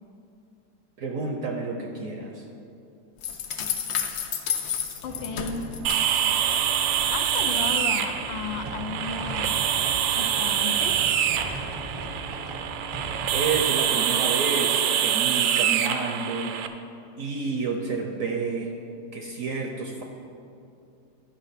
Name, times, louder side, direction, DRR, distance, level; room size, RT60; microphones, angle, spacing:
voice 1, 1.0-2.5 13.3-16.6 17.2-18.7 19.1-20.0, right 4 dB, 65° right, 2 dB, 0.9 m, -30 dB
sound 1, 3.2-6.6 6.9-7.6, left 8 dB, 65° left, 1.2 m, -31 dB
voice 2, 5.0-5.6 7.1-9.6 10.1-11.1, left 5 dB, 85° left, 8 dB, 1.4 m, -34 dB
sound 2, 5.0-13.6, right 2 dB, 25° right, 0.5 m, -38 dB
sound 3, 5.8-16.7, right 9 dB, 85° right, 1.3 m, -25 dB
10.0 x 5.9 x 5.7 m, 2.6 s
omnidirectional pair, 2.0 m